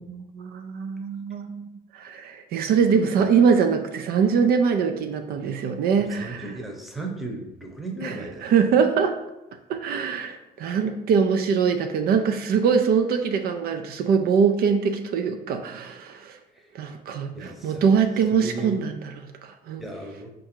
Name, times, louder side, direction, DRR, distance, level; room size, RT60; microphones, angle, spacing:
voice 1, 0.0-6.5 8.0-9.2 9.7-16.4 16.7-19.8, right 6 dB, 65° right, 7 dB, 0.4 m, -23 dB
voice 2, 6.0-8.5 16.5-16.7 17.2-17.9 18.3-18.8 19.8-20.3, right 2 dB, ahead, 1 dB, 0.8 m, -36 dB
4.6 x 2.5 x 4.4 m, 0.95 s
cardioid pair, 110°, 17 cm